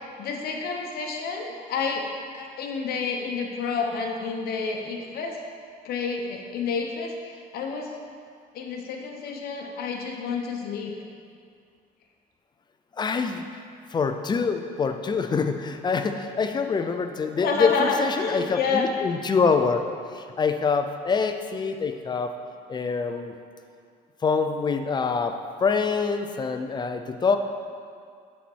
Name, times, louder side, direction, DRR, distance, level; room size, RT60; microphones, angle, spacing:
voice 1, 0.2-2.1 2.3-5.4 5.8-7.9 8.5-10.9 17.3-18.9 23.1-23.2, left 4 dB, 65° left, 1 dB, 0.9 m, -29 dB
voice 2, 13.0-13.5 13.9-19.8 20.4-22.3 22.7-23.3 24.2-27.4, left 5 dB, 25° left, 7 dB, 0.4 m, -25 dB
7.1 x 4.3 x 4.5 m, 2.2 s
cardioid pair, 110°, 17 cm